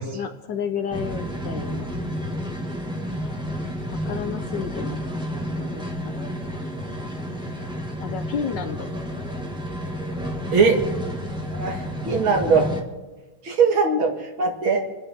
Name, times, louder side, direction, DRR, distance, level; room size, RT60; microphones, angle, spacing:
voice 1, 0.1-1.9 4.1-5.0 5.6-6.3 8.0-8.9, left 7 dB, 65° left, 7 dB, 1.3 m, -31 dB
sound 1, 0.9-12.8, equal, ahead, 1.4 m, -31 dB
voice 2, 11.6-12.7 13.4-14.8, right 4 dB, 65° right, 2 dB, 2.9 m, -20 dB
28.0 x 11.0 x 3.6 m, 1.2 s
omnidirectional pair, 2.4 m